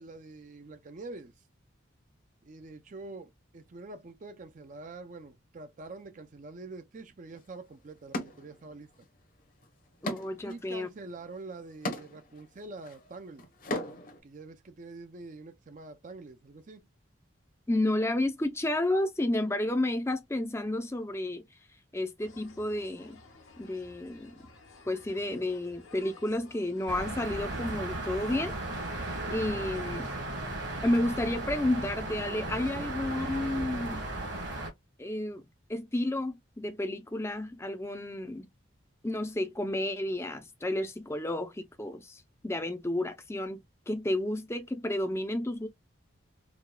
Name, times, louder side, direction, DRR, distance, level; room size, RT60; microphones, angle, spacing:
voice 1, 0.0-1.3 2.4-8.9 10.4-13.5 14.2-16.9, right 3 dB, 40° right, 0.4 m, -45 dB
sound 1, 7.3-7.4 8.1-9.0 9.4-14.2, left 1 dB, 40° left, 0.8 m, -39 dB
voice 2, 10.0-10.9 17.7-21.4 21.9-23.2 23.6-24.4 24.9-28.5 29.3-30.1 30.8-34.1 35.0-35.4 35.7-38.5 39.0-43.6 43.9-45.7, left 1 dB, 15° left, 0.4 m, -31 dB
sound 2, 22.2-30.2, left 3 dB, 80° left, 1.2 m, -54 dB
sound 3, 26.9-34.7, right 2 dB, 55° right, 1.4 m, -36 dB
4.7 x 2.2 x 2.2 m
head